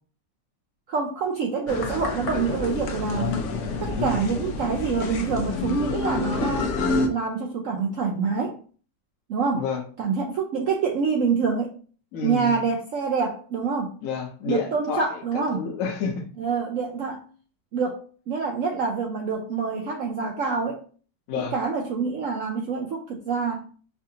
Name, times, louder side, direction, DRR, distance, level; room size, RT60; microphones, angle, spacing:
voice 1, 0.9-3.4 3.8-6.8 7.1-8.6 9.3-9.6 10.0-11.7 12.2-13.9 14.5-15.6 16.4-17.2 17.7-18.0 18.3-20.8 21.4-23.6, right 5 dB, 80° right, 1 dB, 0.7 m, -26 dB
sound 1, 1.7-7.1, left 3 dB, 85° left, 0.6 m, -28 dB
voice 2, 12.1-12.6 14.0-15.2 15.5-16.2 21.3-21.5, left 5 dB, 60° left, 2 dB, 1.0 m, -29 dB
4.8 x 2.4 x 2.7 m, 0.42 s
omnidirectional pair, 1.9 m